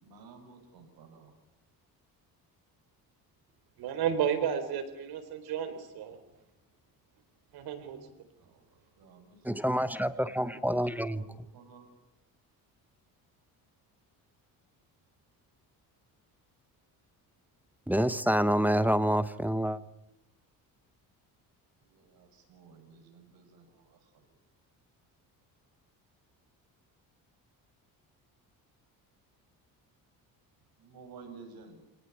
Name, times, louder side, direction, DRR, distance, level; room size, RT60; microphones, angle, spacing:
voice 1, 0.0-1.3 8.4-11.9 21.8-24.3 30.8-31.8, right 4 dB, 70° right, 5 dB, 7.5 m, -54 dB
voice 2, 3.8-6.2 7.5-8.0, right 8 dB, 85° right, 9 dB, 4.3 m, -32 dB
voice 3, 9.4-11.2 17.9-19.8, equal, 5° right, 13 dB, 0.9 m, -27 dB
28.0 x 18.5 x 9.7 m, 0.90 s
cardioid pair, 135°, 37 cm